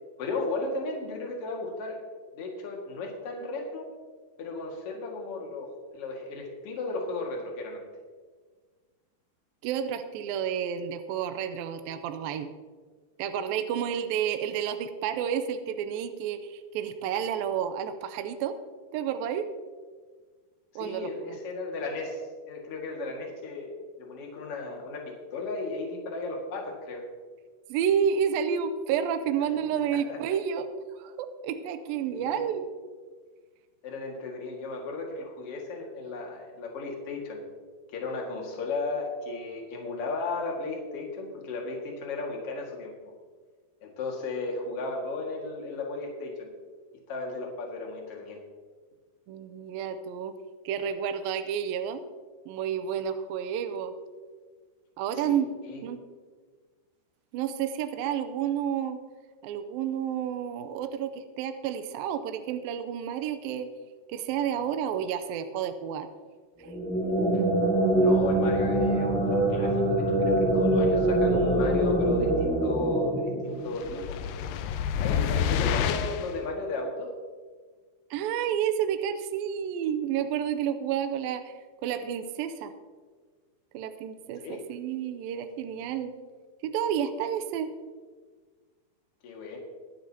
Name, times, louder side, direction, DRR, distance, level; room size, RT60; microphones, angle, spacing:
voice 1, 0.2-2.0 2.3-3.9 4.4-7.8 20.7-27.1 29.5-29.6 30.1-30.2 32.1-32.5 33.8-37.4 37.9-42.9 43.8-46.5 47.1-48.4 55.2-55.4 55.6-55.8 67.3-67.5 68.0-74.2 75.0-77.1 84.4-84.7 89.2-89.6, left 3 dB, 45° left, 0 dB, 2.4 m, -35 dB
voice 2, 9.6-12.5 13.2-18.6 18.9-19.5 20.8-21.1 27.7-32.7 49.3-50.3 50.7-52.0 52.5-53.9 55.0-55.5 55.8-56.0 57.3-59.0 59.4-63.7 64.1-66.1 66.6-66.7 78.1-81.5 81.8-82.7 83.7-86.1 86.6-87.7, right 8 dB, 80° right, 9 dB, 2.2 m, -30 dB
sound 1, 66.6-74.1, right 1 dB, 10° left, 0.7 m, -24 dB
sound 2, 73.7-76.4, left 8 dB, 80° left, 2.2 m, -28 dB
23.5 x 9.2 x 2.9 m, 1.5 s
omnidirectional pair, 4.6 m